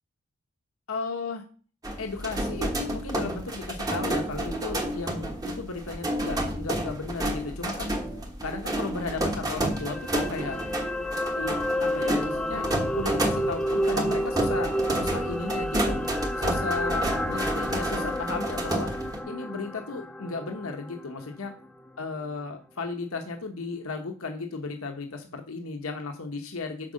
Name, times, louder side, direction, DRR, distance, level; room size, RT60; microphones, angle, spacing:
voice 1, 0.9-1.4 2.0-7.9 8.4-10.6 11.3-12.7 13.0-16.0 16.4-21.5 22.0-26.9, left 3 dB, 80° left, 4 dB, 1.0 m, -35 dB
sound 1, 1.8-19.2, right 1 dB, 15° right, 1.1 m, -30 dB
sound 2, 9.7-22.0 22.3-22.5, equal, 5° left, 0.5 m, -30 dB
7.5 x 4.8 x 6.3 m, 0.41 s
head